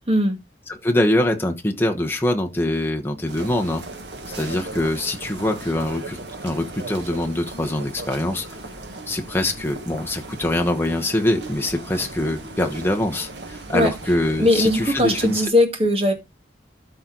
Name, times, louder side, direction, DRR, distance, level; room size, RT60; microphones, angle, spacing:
voice 1, 0.1-0.4 13.7-13.9 14.4-16.1, left 1 dB, 35° right, 1.9 m, -19 dB
voice 2, 0.7-3.8 4.3-8.5 9.1-15.5, left 1 dB, 15° left, 1.2 m, -24 dB
sound 1, 3.3-15.5, right 2 dB, 85° right, 1.6 m, -37 dB
13.0 x 4.5 x 3.9 m
head